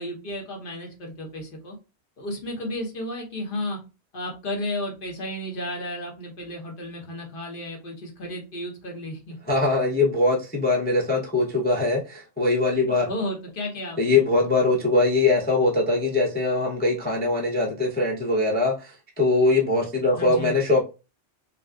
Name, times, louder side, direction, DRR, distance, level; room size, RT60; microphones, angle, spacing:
voice 1, 0.0-1.8 2.2-3.8 4.1-9.4 13.1-14.2 20.2-20.5, left 1 dB, 55° left, 0.9 m, -33 dB
voice 2, 9.5-13.1 14.0-20.8, left 2 dB, 15° left, 0.4 m, -22 dB
2.5 x 2.2 x 2.2 m
omnidirectional pair, 1.2 m